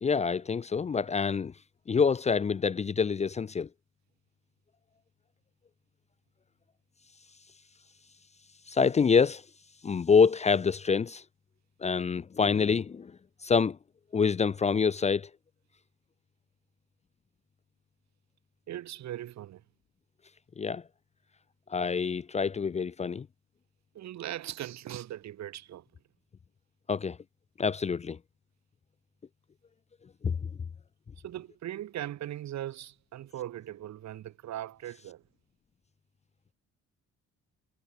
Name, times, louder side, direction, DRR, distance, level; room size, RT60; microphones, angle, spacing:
voice 1, 0.0-1.5 1.9-3.7 8.7-9.4 9.8-11.2 11.8-13.1 13.4-13.8 14.1-15.3 20.6-20.8 21.7-23.3 26.9-27.2 27.6-28.2 30.2-30.4, left 5 dB, 25° left, 0.6 m, -26 dB
voice 2, 18.7-19.6 23.9-25.8 31.2-35.2, right 12 dB, 65° right, 5.0 m, -39 dB
cardioid pair, 155°, 29 cm